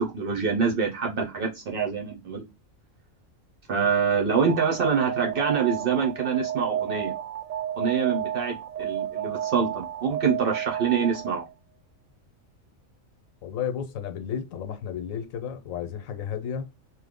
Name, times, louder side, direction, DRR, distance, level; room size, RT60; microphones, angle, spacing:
voice 1, 0.1-2.4 3.7-7.1 7.8-11.5, right 6 dB, 55° right, 0.7 m, -25 dB
Alarm, 4.5-11.5, right 11 dB, 85° right, 1.0 m, -32 dB
voice 2, 13.4-16.7, left 8 dB, 80° left, 1.0 m, -32 dB
3.1 x 2.0 x 3.4 m
omnidirectional pair, 1.4 m